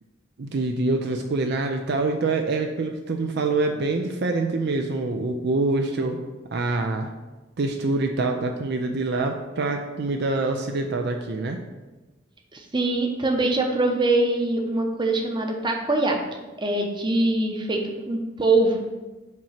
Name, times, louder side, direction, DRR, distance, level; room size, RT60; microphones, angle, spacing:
voice 1, 0.4-6.2 6.5-7.1 7.6-11.6, right 3 dB, 60° right, 4 dB, 0.5 m, -25 dB
voice 2, 12.5-16.2 16.6-17.8 18.1-18.9, right 2 dB, 25° right, 2 dB, 0.8 m, -23 dB
7.5 x 3.0 x 5.7 m, 1.2 s
head